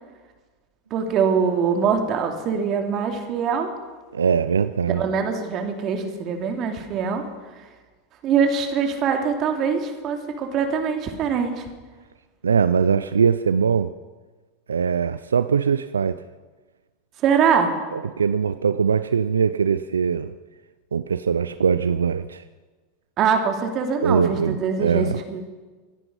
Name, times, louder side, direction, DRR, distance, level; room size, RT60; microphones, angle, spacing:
voice 1, 0.9-3.7 4.9-7.2 8.2-11.7 17.2-17.8 23.2-25.5, right 6 dB, 45° right, 4 dB, 2.7 m, -23 dB
voice 2, 4.1-5.0 12.4-13.9 14.7-16.2 17.9-20.3 20.9-22.4 24.0-25.2, right 6 dB, 90° right, 13 dB, 0.4 m, -21 dB
25.0 x 9.8 x 5.4 m, 1.3 s
hypercardioid pair, 95°, 0 cm